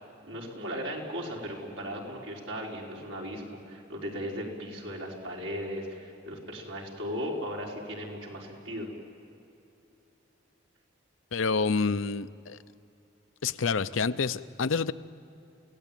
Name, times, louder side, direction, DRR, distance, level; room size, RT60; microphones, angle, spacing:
voice 1, 0.2-8.9, equal, 85° right, -2 dB, 5.0 m, -37 dB
voice 2, 11.3-12.6 13.4-14.9, left 4 dB, 85° left, 13 dB, 0.7 m, -28 dB
29.0 x 17.5 x 9.1 m, 2.8 s
head